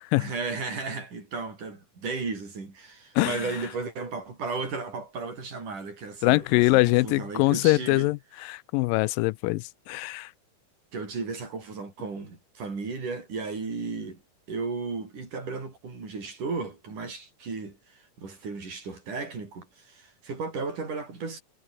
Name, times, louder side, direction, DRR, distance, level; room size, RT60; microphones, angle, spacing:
voice 1, 0.2-8.1 10.9-14.2 14.5-21.4, right 4 dB, 65° right, 8.0 m, -35 dB
voice 2, 3.2-3.5 6.2-10.3, left 21 dB, 90° left, 2.3 m, -23 dB
omnidirectional pair, 3.9 m